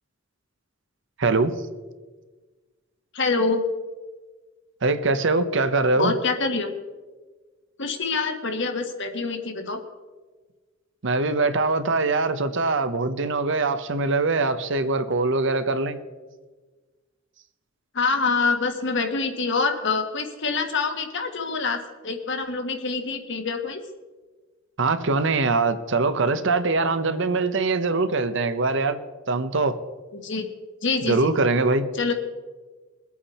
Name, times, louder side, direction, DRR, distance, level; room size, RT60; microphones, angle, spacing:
voice 1, 1.2-1.5 4.8-6.1 11.0-16.0 24.8-29.0 29.3-29.8 31.1-31.8, right 3 dB, 65° right, 10 dB, 0.9 m, -22 dB
voice 2, 3.1-3.6 6.0-6.7 7.8-9.8 17.9-23.8 30.1-30.5 30.8-31.3 31.9-32.1, left 4 dB, 65° left, 5 dB, 1.6 m, -26 dB
22.0 x 8.5 x 4.3 m, 1.3 s
head